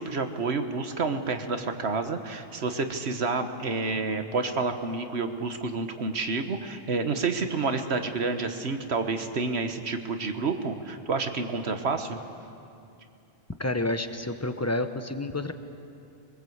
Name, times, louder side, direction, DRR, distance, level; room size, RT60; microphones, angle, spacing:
voice 1, 0.0-12.2, right 4 dB, 75° right, 7 dB, 1.5 m, -29 dB
voice 2, 13.6-15.5, left 2 dB, 15° left, 9 dB, 0.9 m, -29 dB
22.5 x 21.5 x 8.0 m, 2.6 s
omnidirectional pair, 1.1 m